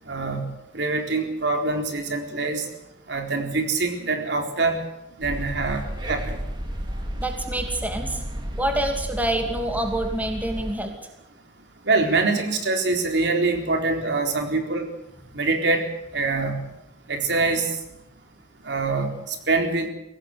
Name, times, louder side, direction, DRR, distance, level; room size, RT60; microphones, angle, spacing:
voice 1, 0.1-2.7 3.1-4.8 5.2-6.4 11.8-14.9 15.3-16.6 17.1-17.8 18.6-19.9, right 3 dB, 65° right, 3 dB, 4.1 m, -24 dB
sound 1, 5.2-10.8, equal, 25° right, 2.9 m, -32 dB
voice 2, 7.2-8.2 8.6-10.9, right 1 dB, 10° right, 3 dB, 2.7 m, -26 dB
24.0 x 17.5 x 8.1 m, 0.84 s
head